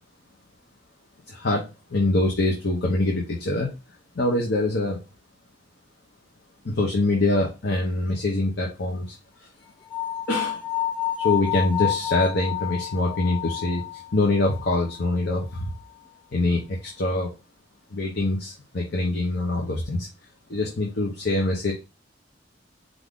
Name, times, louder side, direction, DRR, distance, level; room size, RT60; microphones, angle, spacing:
voice 1, 1.3-3.7 4.2-5.0 6.6-9.2 10.3-10.6 11.2-15.7 16.3-17.3 17.9-20.1 20.5-21.7, left 2 dB, 60° left, 0 dB, 0.9 m, -24 dB
sound 1, 9.9-15.0, left 12 dB, 25° left, 0.6 m, -29 dB
4.6 x 2.6 x 3.7 m, 0.28 s
head